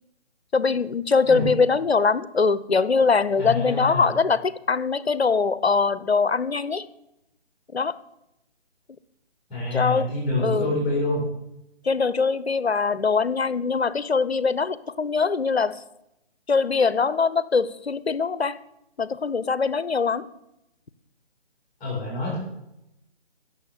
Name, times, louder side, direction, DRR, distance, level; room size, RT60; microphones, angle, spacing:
voice 1, 0.5-6.9 7.7-8.0 9.7-10.1 10.4-10.7 11.8-15.8 16.5-18.6 19.0-20.3, left 4 dB, 70° left, 16 dB, 0.9 m, -22 dB
voice 2, 3.4-4.0 9.5-11.2 21.8-22.4, left 2 dB, 15° left, -5 dB, 4.9 m, -26 dB
15.5 x 7.3 x 7.2 m, 0.85 s
figure-of-eight pair, 145°, 33 cm